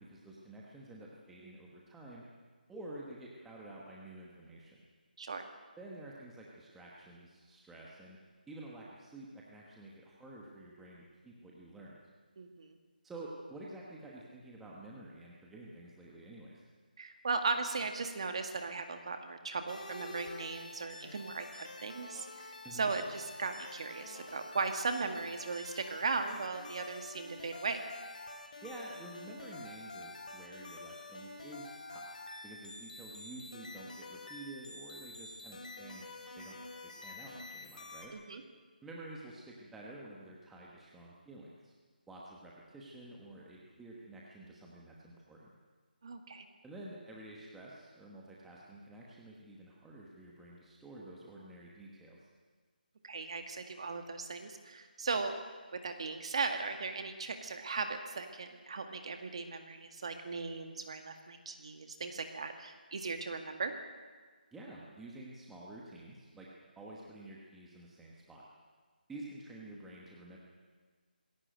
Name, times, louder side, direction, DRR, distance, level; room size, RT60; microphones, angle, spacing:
voice 1, 0.0-2.2 2.7-4.8 5.8-8.2 8.5-12.0 13.0-16.6 22.6-22.9 28.6-32.1 32.4-36.1 36.3-38.1 38.8-41.7 42.1-45.5 46.6-52.3 64.5-68.5 69.1-70.4, right 2 dB, 5° right, -4 dB, 1.1 m, -50 dB
voice 2, 5.2-5.5 12.4-12.8 17.0-27.8 38.1-38.4 46.0-46.5 53.0-55.3 55.7-63.7, right 4 dB, 35° right, 6 dB, 2.0 m, -37 dB
sound 1, 19.7-38.1, left 2 dB, 50° left, 3.8 m, -48 dB
20.5 x 17.0 x 9.1 m, 1.5 s
hypercardioid pair, 175°, 5 cm